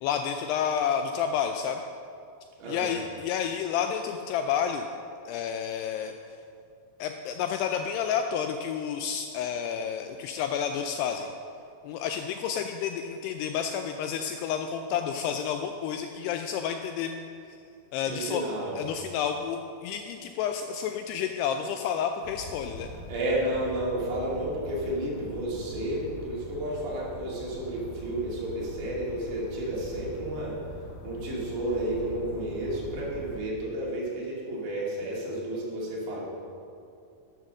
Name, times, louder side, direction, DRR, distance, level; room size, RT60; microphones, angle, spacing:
voice 1, 0.0-1.8 2.7-4.9 5.3-6.2 7.0-11.3 11.8-17.6 17.9-18.4 18.8-22.9, left 8 dB, 85° left, 5 dB, 2.4 m, -30 dB
voice 2, 2.6-2.9 18.0-18.8 23.1-30.6 31.0-36.3, right 1 dB, 70° right, -5 dB, 4.6 m, -31 dB
sound 1, 22.2-33.4, equal, 65° left, 2.2 m, -43 dB
11.0 x 8.2 x 6.4 m, 2.5 s
omnidirectional pair, 5.1 m